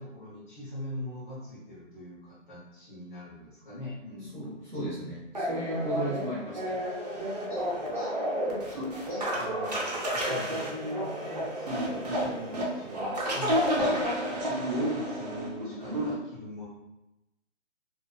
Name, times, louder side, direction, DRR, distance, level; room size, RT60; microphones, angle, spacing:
voice 1, 0.0-4.4 7.5-7.6 7.9-8.1 8.7-8.8 9.1-16.7, left 1 dB, 40° left, -6 dB, 0.8 m, -42 dB
voice 2, 4.3-6.8, equal, ahead, -18 dB, 0.7 m, -35 dB
sound 1, 5.3-16.1, equal, 35° right, 0.4 m, -30 dB
2.4 x 2.4 x 2.2 m, 0.94 s
hypercardioid pair, 160°, 37 cm